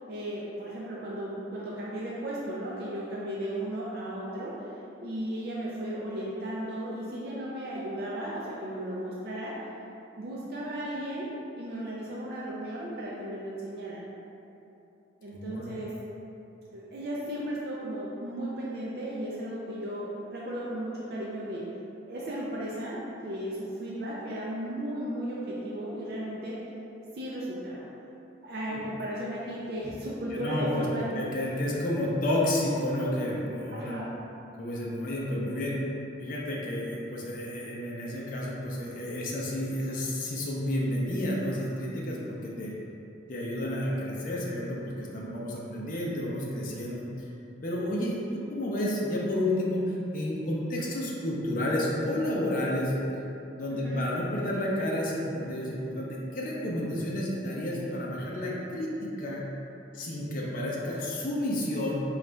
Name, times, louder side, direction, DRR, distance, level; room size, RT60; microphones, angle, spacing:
voice 1, 0.1-4.5 5.0-9.6 10.1-11.3 11.5-14.1 15.2-15.9 16.7-21.7 22.1-26.6 27.1-27.8 28.4-31.2 33.7-34.2 35.4-35.5 53.7-54.1, right 1 dB, 55° right, -6 dB, 0.4 m, -35 dB
voice 2, 15.3-15.7 28.7-28.8 30.3-34.0 34.6-35.8 36.2-42.7 43.3-47.1 47.6-52.9 53.6-59.4 59.9-62.0, left 1 dB, 45° left, -4 dB, 0.5 m, -31 dB
3.9 x 2.3 x 3.3 m, 2.9 s
head